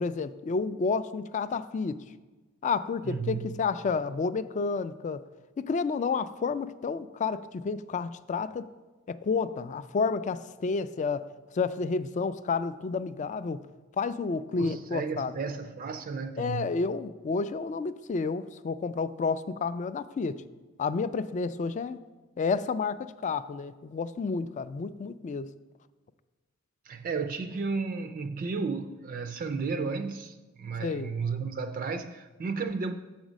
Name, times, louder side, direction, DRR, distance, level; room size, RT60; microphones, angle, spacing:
voice 1, 0.0-2.0 2.6-5.2 5.6-8.7 9.1-11.3 11.5-13.6 14.0-15.4 16.4-20.4 20.8-22.0 22.4-25.5 30.8-31.1, left 4 dB, 35° left, 0.3 m, -30 dB
voice 2, 3.1-3.6 14.6-16.7 26.9-32.9, right 4 dB, 45° right, 0.3 m, -33 dB
7.2 x 5.1 x 6.2 m
head